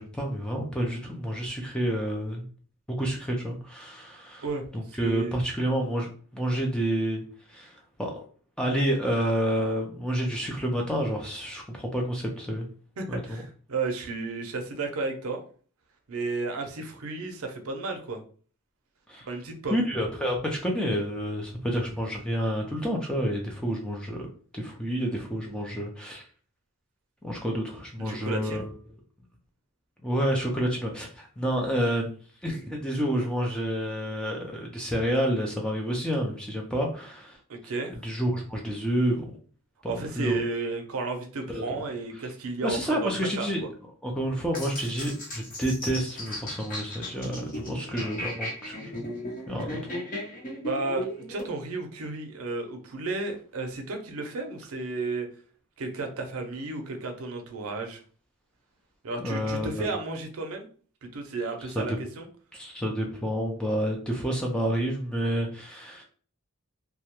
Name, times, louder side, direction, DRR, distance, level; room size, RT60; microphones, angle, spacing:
voice 1, 0.0-2.5 2.9-4.4 4.7-6.1 6.3-7.2 7.5-8.2 8.6-12.7 13.1-13.4 19.1-19.2 19.7-24.3 24.5-26.2 27.2-28.7 30.0-37.4 38.0-39.3 39.8-40.4 41.5-41.8 42.6-43.6 44.0-49.0 49.5-49.8 59.2-59.9 61.8-62.0 62.5-66.0, equal, 5° left, 0 dB, 0.4 m, -29 dB
voice 2, 4.4-5.4 13.0-15.4 16.1-18.2 19.3-19.8 28.0-28.6 37.5-38.0 39.9-43.5 49.5-49.6 49.9-50.0 50.6-55.3 55.8-58.0 59.0-60.7 61.0-62.3, right 3 dB, 75° right, 4 dB, 0.5 m, -33 dB
sound 1, 44.5-51.5, left 1 dB, 40° left, 0.8 m, -36 dB
2.3 x 2.1 x 2.9 m, 0.42 s
head